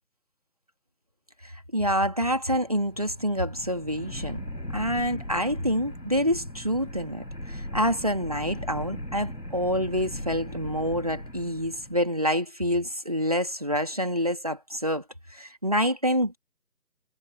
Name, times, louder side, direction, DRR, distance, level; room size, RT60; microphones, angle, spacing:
voice 1, 1.4-4.4 4.7-15.0 15.3-16.4, equal, 25° right, 2.3 m, -27 dB
sound 1, 2.6-12.1, equal, 90° left, 7.3 m, -38 dB
figure-of-eight pair, 170°, 49 cm